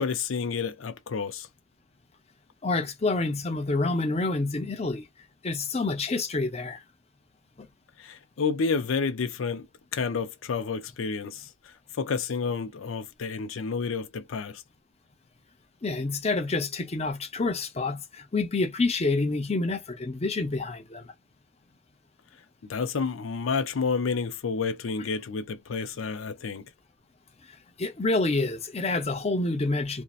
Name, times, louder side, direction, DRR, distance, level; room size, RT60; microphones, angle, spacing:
voice 1, 0.0-1.5 8.0-9.7 9.9-14.6 22.7-26.7, left 5 dB, 90° left, 0.5 m, -30 dB
voice 2, 2.6-5.1 5.4-6.8 7.6-7.7 15.8-21.1 27.8-30.0, left 3 dB, 35° left, 0.7 m, -28 dB
2.7 x 2.1 x 2.3 m
head